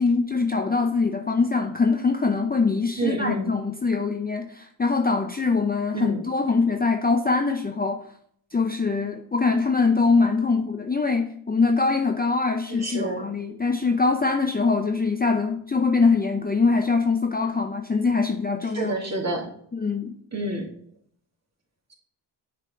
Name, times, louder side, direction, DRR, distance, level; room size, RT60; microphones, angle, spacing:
voice 1, 0.0-8.0 8.5-18.9 19.7-20.1, left 4 dB, 20° left, 5 dB, 0.6 m, -23 dB
voice 2, 3.0-3.5 5.9-6.2 12.7-13.3 18.7-19.5 20.3-20.6, right 2 dB, 30° right, 0 dB, 2.0 m, -28 dB
6.7 x 3.4 x 4.6 m, 0.62 s
supercardioid pair, 50°, 48 cm